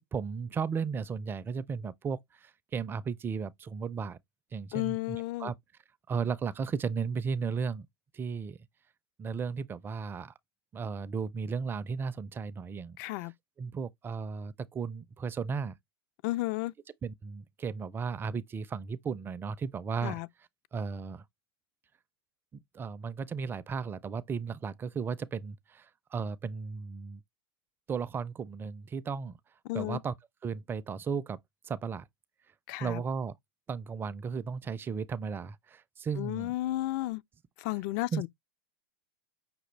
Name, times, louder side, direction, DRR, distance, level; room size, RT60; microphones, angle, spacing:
voice 1, 0.0-4.2 4.5-5.5 6.1-7.9 8.1-8.6 9.2-10.3 10.7-13.0 13.2-13.3 13.6-15.7 17.0-20.2 20.7-21.2 22.5-27.2 27.9-29.4 29.7-30.1 30.4-31.4 31.6-32.1 32.8-33.3 33.7-36.5 38.1-38.3, right 5 dB, 15° right, 0.4 m, -35 dB
voice 2, 4.7-5.5 13.0-13.3 16.2-16.7 20.0-20.3 29.7-30.0 32.7-33.0 36.2-37.2 37.6-38.3, left 18 dB, 50° left, 0.4 m, -33 dB
6.0 x 2.3 x 3.2 m
hypercardioid pair, 130°, 12 cm